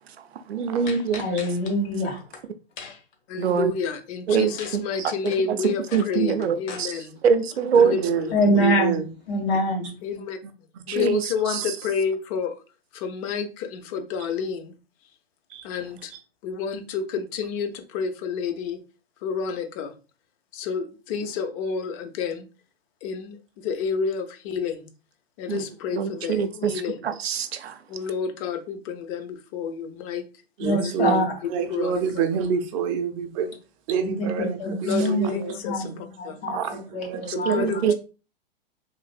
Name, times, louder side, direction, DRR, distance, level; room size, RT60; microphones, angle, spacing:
voice 1, 0.5-1.3 3.4-3.7 4.3-4.9 5.2-5.3 5.9-6.9 7.2-8.0 10.9-11.2 11.5-11.6 25.5-25.6 25.9-26.7 27.0-27.8 37.3-37.9, right 6 dB, 85° right, 0.5 m, -23 dB
sound 1, 0.9-1.7 2.1-2.4 2.8-3.1 4.6-4.8 5.1-6.8, left 5 dB, 55° left, 1.0 m, -39 dB
voice 2, 1.2-2.2 8.3-9.0 9.3-9.9 30.6-31.2 34.0-35.4 35.6-37.6, left 1 dB, 75° left, 1.6 m, -25 dB
voice 3, 3.3-7.2 7.7-8.3 10.0-10.4 10.9-12.5 12.9-14.7 15.6-16.1 16.4-18.8 19.2-19.9 20.5-22.5 23.0-24.9 25.4-27.1 27.9-30.2 30.7-30.9 31.7-32.0 34.6-36.4 37.3-37.9, left 6 dB, 35° left, 0.6 m, -30 dB
voice 4, 7.7-9.1 10.4-10.8 11.4-11.6 15.5-15.7 30.6-33.6 33.9-36.0 36.5-37.9, right 7 dB, 35° right, 0.4 m, -28 dB
3.2 x 2.5 x 2.4 m
hypercardioid pair, 115°, 30 cm